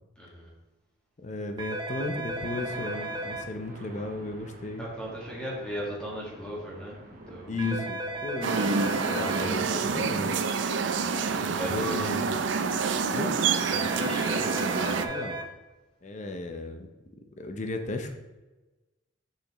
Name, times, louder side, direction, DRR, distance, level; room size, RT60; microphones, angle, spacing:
voice 1, 0.2-0.5 4.8-6.9 7.3-7.5 8.6-9.9 10.7-12.1 13.9-15.1, right 1 dB, 5° left, -5 dB, 1.7 m, -38 dB
voice 2, 1.2-4.9 7.3-10.3 11.4-12.3 13.1-13.4 15.0-15.4 16.0-16.9 17.4-18.1, left 2 dB, 40° left, 5 dB, 0.6 m, -35 dB
sound 1, 1.6-3.4 7.6-9.4 13.6-15.4, right 1 dB, 25° right, 0.7 m, -34 dB
sound 2, 2.3-13.1, right 1 dB, 45° right, 1.0 m, -50 dB
sound 3, 8.4-15.1, right 5 dB, 70° right, 0.5 m, -27 dB
6.7 x 5.7 x 3.0 m, 1.1 s
head